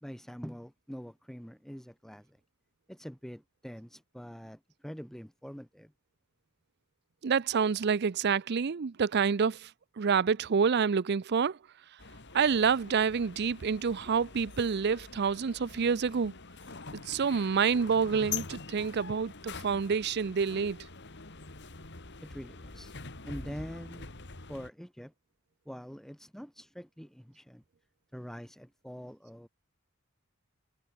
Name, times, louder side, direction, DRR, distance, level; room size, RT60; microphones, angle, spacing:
voice 1, 0.0-2.3 2.9-5.9 22.2-22.9 23.2-24.1 24.5-25.1 25.7-27.6 28.1-29.5, equal, ahead, 2.1 m, -44 dB
voice 2, 7.2-9.7 10.0-11.6 12.3-16.3 17.1-20.8, right 6 dB, 55° right, 0.5 m, -28 dB
sound 1, 12.0-24.7, left 5 dB, 55° left, 2.9 m, -44 dB
head